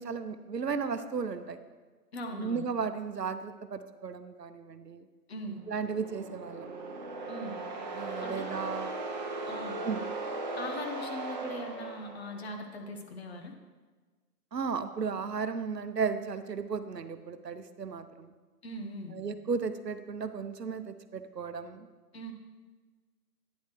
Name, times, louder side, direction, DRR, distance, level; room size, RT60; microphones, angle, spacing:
voice 1, 0.0-1.6 2.3-5.1 5.7-6.8 7.9-8.9 9.8-10.0 14.5-18.3 19.1-21.9, right 5 dB, 75° right, 10 dB, 0.8 m, -35 dB
voice 2, 2.1-2.7 5.3-5.6 7.3-7.6 8.2-8.4 9.4-9.8 10.5-13.5 18.6-19.2 22.1-22.3, left 1 dB, 40° left, 3 dB, 1.1 m, -40 dB
sound 1, 5.6-12.6, right 3 dB, 25° right, 1.0 m, -38 dB
11.0 x 9.7 x 3.1 m, 1.4 s
figure-of-eight pair, 140°, 49 cm